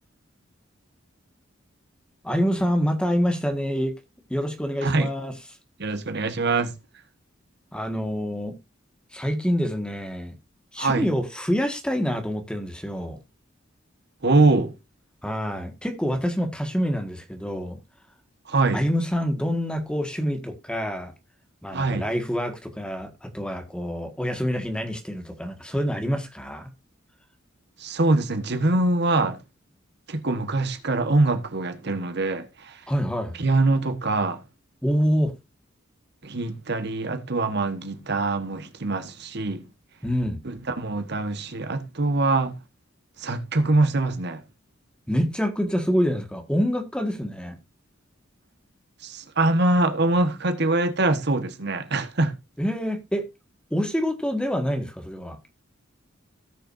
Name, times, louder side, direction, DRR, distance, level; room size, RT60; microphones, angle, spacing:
voice 1, 2.2-3.9 4.3-5.3 7.7-8.5 9.1-10.3 10.7-13.2 15.2-17.8 18.7-21.1 21.6-26.7 32.9-33.4 34.8-35.3 40.0-40.4 45.1-47.6 52.6-53.3 53.7-55.4, equal, 5° left, 1.7 m, -26 dB
voice 2, 5.8-6.7 10.8-11.1 14.2-14.7 18.5-18.8 21.7-22.1 27.8-29.4 30.1-32.8 33.4-34.4 36.2-39.6 40.4-42.6 43.2-44.4 49.0-52.4, right 2 dB, 60° right, 1.3 m, -23 dB
17.5 x 6.5 x 2.6 m
head